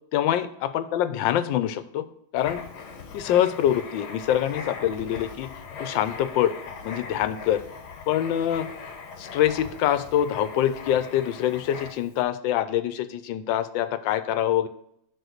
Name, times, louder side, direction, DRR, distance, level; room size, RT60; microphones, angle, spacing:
voice 1, 0.1-2.0 2.3-2.6 3.1-5.5 5.8-6.5 6.8-7.6 8.1-8.7 9.2-14.7, left 11 dB, 85° left, 12 dB, 1.3 m, -25 dB
Writing, 2.4-12.2, left 5 dB, 65° left, 1.6 m, -40 dB
6.8 x 4.2 x 6.5 m, 0.74 s
omnidirectional pair, 2.0 m